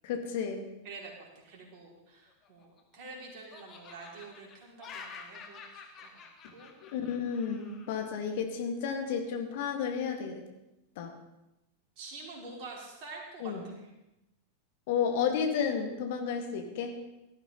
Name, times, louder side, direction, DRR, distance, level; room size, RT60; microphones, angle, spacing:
voice 1, 0.0-0.6 6.9-10.4 11.0-11.1 13.4-13.6 14.9-17.0, left 7 dB, 50° left, 4 dB, 2.1 m, -32 dB
voice 2, 0.8-6.2 6.5-6.8 12.0-13.9, right 3 dB, 45° right, -2 dB, 4.7 m, -47 dB
Laughter, 2.3-3.1 3.5-7.9, left 5 dB, 30° left, 2.2 m, -49 dB
18.0 x 13.5 x 4.1 m, 0.91 s
figure-of-eight pair, 90°, 0 cm